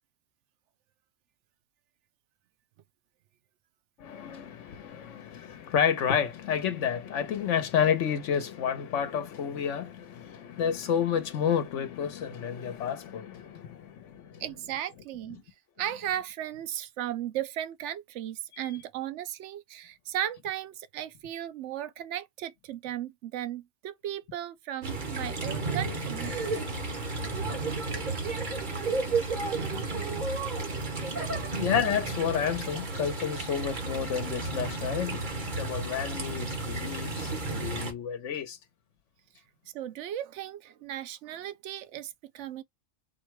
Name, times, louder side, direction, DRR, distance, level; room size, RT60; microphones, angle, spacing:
voice 1, 4.0-14.4 31.6-35.2 35.6-38.6, left 8 dB, 80° left, 1.1 m, -30 dB
voice 2, 14.4-15.4 15.8-26.3 31.5-31.6 39.7-42.6, right 11 dB, 80° right, 0.9 m, -36 dB
sound 1, 24.8-37.9, right 3 dB, 40° right, 1.4 m, -32 dB
4.3 x 2.2 x 4.6 m
omnidirectional pair, 1.2 m